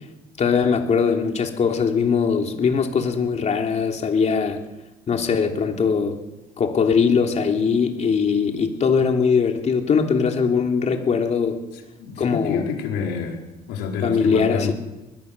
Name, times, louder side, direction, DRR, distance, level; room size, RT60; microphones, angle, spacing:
voice 1, 0.4-4.6 5.1-6.2 6.6-11.6 12.2-12.6 14.0-14.7, left 5 dB, 40° left, 4 dB, 3.3 m, -21 dB
voice 2, 12.0-13.4 13.7-14.7, left 6 dB, 90° left, 2 dB, 4.8 m, -28 dB
22.0 x 18.5 x 6.9 m, 1.0 s
cardioid pair, 110°, 17 cm